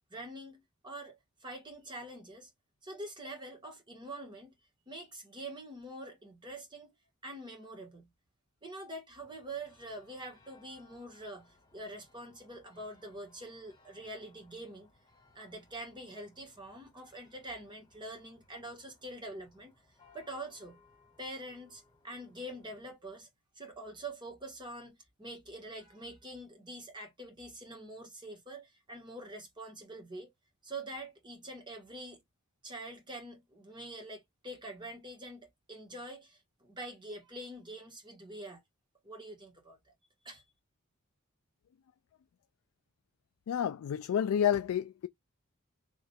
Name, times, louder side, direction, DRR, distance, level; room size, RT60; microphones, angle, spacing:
voice 1, 0.1-2.5 2.8-4.5 4.9-6.9 7.2-8.1 8.6-14.9 15.3-19.7 20.1-20.8 21.2-23.3 23.5-30.3 30.6-32.2 32.6-38.6 39.0-39.9 40.2-40.4, right 1 dB, 20° right, 1.6 m, -45 dB
sound 1, 9.2-22.9, left 3 dB, 20° left, 1.8 m, -65 dB
voice 2, 43.5-45.1, left 9 dB, 75° left, 0.3 m, -29 dB
3.3 x 2.9 x 4.2 m
head